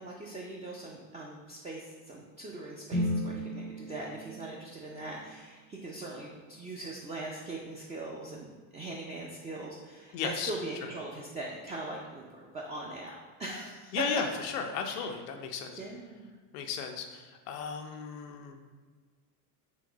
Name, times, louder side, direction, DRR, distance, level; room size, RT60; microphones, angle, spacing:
voice 1, 0.0-13.1 13.4-13.9 14.9-15.0 15.7-16.4, right 2 dB, 15° right, -2 dB, 0.5 m, -41 dB
sound 1, 2.9-6.9, equal, 60° right, 1.2 m, -37 dB
voice 2, 10.1-10.5 10.8-10.9 13.9-15.8 16.5-18.6, left 6 dB, 90° left, 5 dB, 0.7 m, -35 dB
3.8 x 2.9 x 3.8 m, 1.5 s
supercardioid pair, 90°, 45 cm